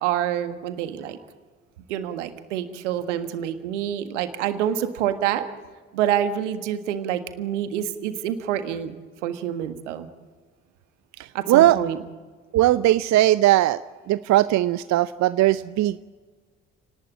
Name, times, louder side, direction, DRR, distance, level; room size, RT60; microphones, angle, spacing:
voice 1, 0.0-1.2 1.9-5.4 5.9-10.1 11.3-12.0, right 10 dB, 75° right, 9 dB, 1.7 m, -27 dB
voice 2, 11.5-11.8 12.5-13.8 14.1-16.0, right 15 dB, 50° right, 15 dB, 0.7 m, -18 dB
29.5 x 18.5 x 8.7 m, 1.5 s
figure-of-eight pair, 45°, 36 cm